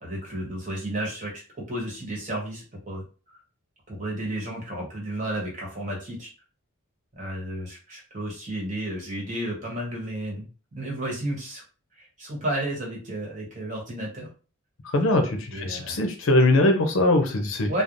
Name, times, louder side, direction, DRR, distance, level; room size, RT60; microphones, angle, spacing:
voice 1, 0.0-1.4 1.7-3.0 3.3-3.4 3.9-6.3 7.2-10.5 10.7-11.6 12.0-14.3 15.5-16.0 17.7-17.8, right 1 dB, 35° right, -3 dB, 1.1 m, -32 dB
voice 2, 14.9-17.8, left 2 dB, 65° left, 4 dB, 0.6 m, -21 dB
3.2 x 2.0 x 2.5 m, 0.35 s
head